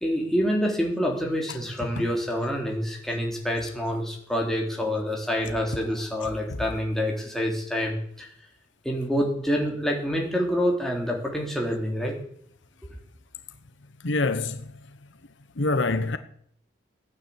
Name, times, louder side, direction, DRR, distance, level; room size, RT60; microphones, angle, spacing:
voice 1, 0.0-8.3 8.8-12.1, equal, ahead, 3.3 m, -27 dB
voice 2, 14.0-14.6 15.6-16.2, left 2 dB, 75° left, 1.1 m, -25 dB
16.0 x 9.6 x 8.6 m
head